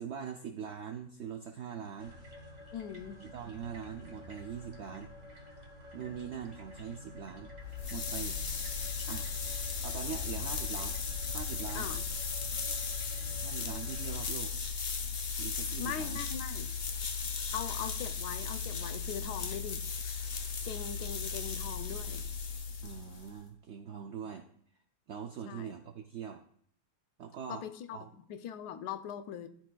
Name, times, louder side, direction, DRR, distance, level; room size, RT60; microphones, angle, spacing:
voice 1, 0.0-2.1 3.2-5.1 5.9-7.5 7.9-8.4 9.0-9.3 9.8-11.0 11.3-11.9 13.4-14.5 15.4-16.2 22.8-24.5 25.1-26.4 27.2-27.7 27.9-28.1, right 7 dB, 75° right, 4 dB, 0.6 m, -42 dB
sound 1, 2.0-14.2, left 2 dB, 35° right, 0.8 m, -49 dB
voice 2, 2.7-3.2 11.7-12.1 15.8-16.7 17.5-19.8 20.6-22.2 25.4-25.7 27.5-29.5, left 9 dB, 90° left, 10 dB, 1.1 m, -41 dB
sound 2, 7.6-23.4, left 5 dB, 60° left, 0.5 m, -36 dB
11.5 x 4.4 x 2.2 m, 0.63 s
omnidirectional pair, 1.7 m